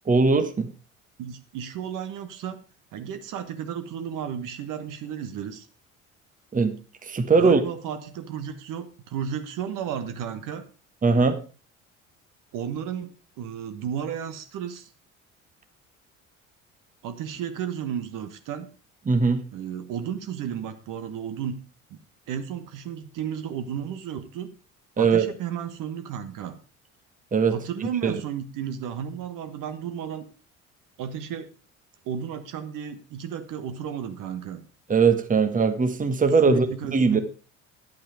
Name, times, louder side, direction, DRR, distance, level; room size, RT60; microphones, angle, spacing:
voice 1, 0.1-0.7 6.5-7.6 11.0-11.4 19.1-19.4 25.0-25.3 27.3-27.6 28.0-28.2 34.9-37.2, right 4 dB, 20° right, 9 dB, 1.3 m, -20 dB
voice 2, 1.2-2.6 2.9-5.7 7.4-10.6 12.5-14.9 17.0-18.7 19.5-21.6 21.9-22.0 22.3-24.5 25.0-26.6 27.5-30.2 31.0-31.5 32.0-34.6 36.4-37.2, right 8 dB, 50° right, 8 dB, 1.4 m, -33 dB
10.5 x 8.6 x 4.9 m, 0.35 s
figure-of-eight pair, 55°, 40 cm